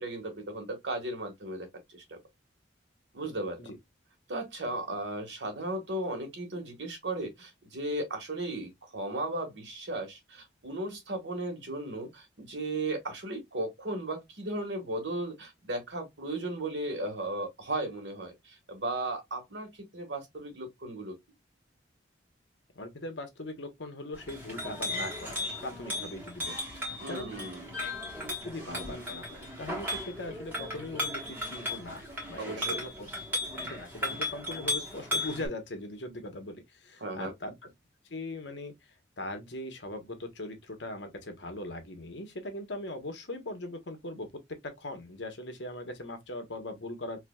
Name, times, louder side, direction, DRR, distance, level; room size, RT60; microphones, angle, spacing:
voice 1, 0.0-2.2 3.1-3.6 4.3-21.1 27.0-27.7 32.4-32.8 37.0-37.3, right 2 dB, 70° right, 1.6 m, -36 dB
voice 2, 22.7-25.4 25.6-27.3 27.8-27.9 28.4-32.0 32.3-33.2 33.6-37.7 38.1-44.3 44.6-47.2, left 1 dB, 70° left, 1.1 m, -40 dB
Chink clink, 24.1-35.5, left 1 dB, 10° right, 1.4 m, -36 dB
4.7 x 2.7 x 2.3 m
head